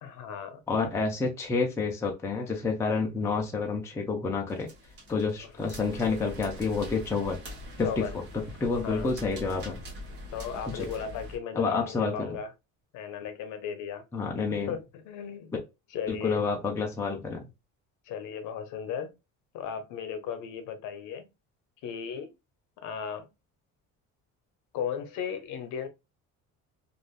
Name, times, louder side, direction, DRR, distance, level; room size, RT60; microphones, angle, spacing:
voice 1, 0.0-0.6 5.4-5.5 7.8-8.2 8.8-9.1 10.3-12.5 12.9-14.0 14.7-15.6 15.9-16.4 18.1-19.1 19.5-21.3 21.8-22.3 22.8-23.3 24.7-25.9, left 7 dB, 65° left, 0.7 m, -36 dB
voice 2, 0.7-4.7 5.1-7.4 7.8-8.0 8.6-9.8 10.7-10.9 11.5-12.4 14.1-14.7 16.1-17.5, left 4 dB, 10° left, 0.4 m, -29 dB
sound 1, 4.5-11.4, left 1 dB, 35° right, 1.1 m, -43 dB
3.3 x 2.5 x 2.3 m
cardioid pair, 175°, 33 cm